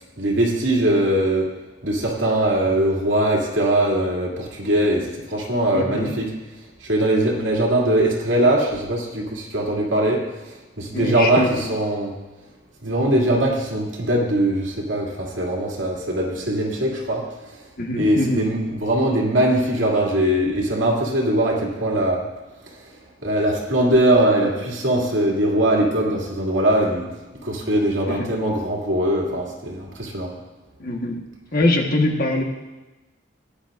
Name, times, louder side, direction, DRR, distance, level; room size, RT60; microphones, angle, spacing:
voice 1, 0.2-1.5 1.8-6.3 6.8-12.1 12.8-17.3 18.0-22.3 22.7-22.8 23.2-27.1 27.4-30.3, right 1 dB, 75° right, -2 dB, 2.4 m, -21 dB
voice 2, 5.7-6.2 10.9-11.7 17.8-18.4 28.1-28.3 30.8-31.2 31.5-32.4, left 1 dB, 50° left, 2 dB, 1.3 m, -23 dB
17.0 x 10.0 x 2.5 m, 1.1 s
head